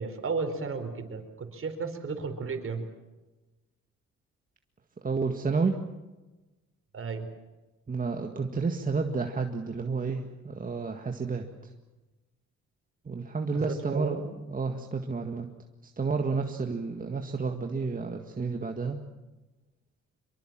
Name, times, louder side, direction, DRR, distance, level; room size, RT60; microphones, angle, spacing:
voice 1, 0.0-2.8 6.9-7.3 13.6-14.2, right 4 dB, 45° right, 6 dB, 4.6 m, -33 dB
voice 2, 5.0-5.8 7.9-11.7 13.0-15.5 15.8-19.0, right 4 dB, 30° right, 3 dB, 1.8 m, -31 dB
25.0 x 23.0 x 7.6 m, 1.1 s
cardioid pair, 90°, 30 cm